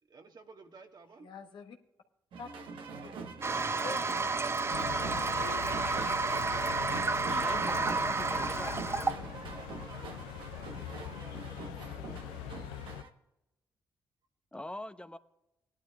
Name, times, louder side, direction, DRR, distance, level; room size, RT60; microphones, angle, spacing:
voice 1, 0.1-1.3 2.9-3.1 6.1-7.2 8.6-10.0 10.3-12.2, right 4 dB, 50° right, 4 dB, 1.5 m, -55 dB
voice 2, 1.2-1.8 2.4-2.5 3.0-3.2 3.7-4.7 5.2-5.6, left 5 dB, 70° left, 4 dB, 1.3 m, -46 dB
sound 1, 2.3-13.1, right 4 dB, 70° right, 1.2 m, -44 dB
Toilet flush, 3.4-9.1, right 3 dB, 30° right, 0.6 m, -31 dB
sound 2, 4.7-13.0, left 11 dB, 90° left, 0.4 m, -42 dB
voice 3, 7.3-8.8 14.5-15.2, left 1 dB, 10° left, 11 dB, 0.9 m, -43 dB
19.5 x 11.5 x 2.4 m, 0.93 s
hypercardioid pair, 45°, 9 cm